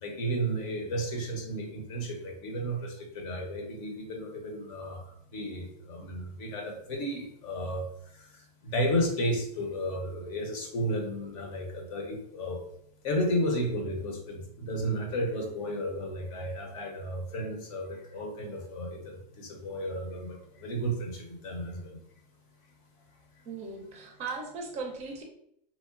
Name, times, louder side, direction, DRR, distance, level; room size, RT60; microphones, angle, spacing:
voice 1, 0.0-12.6 13.0-22.0, equal, 50° left, 2 dB, 0.7 m, -33 dB
voice 2, 23.5-25.2, right 4 dB, 30° right, 2 dB, 0.5 m, -38 dB
3.0 x 2.0 x 2.4 m, 0.72 s
hypercardioid pair, 125°, 21 cm